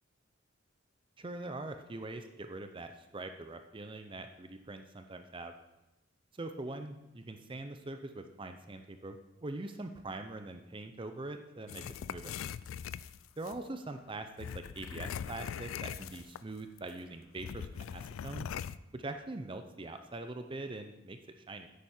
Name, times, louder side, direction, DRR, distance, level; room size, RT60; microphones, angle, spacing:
voice 1, 1.2-5.5 6.3-12.3 13.4-18.5 18.9-21.7, right 2 dB, 25° right, 7 dB, 0.5 m, -43 dB
sound 1, 11.7-13.6 14.4-16.5 16.8-16.9 17.4-18.8, left 8 dB, 85° left, 0.3 m, -41 dB
10.0 x 8.3 x 4.3 m, 0.94 s
head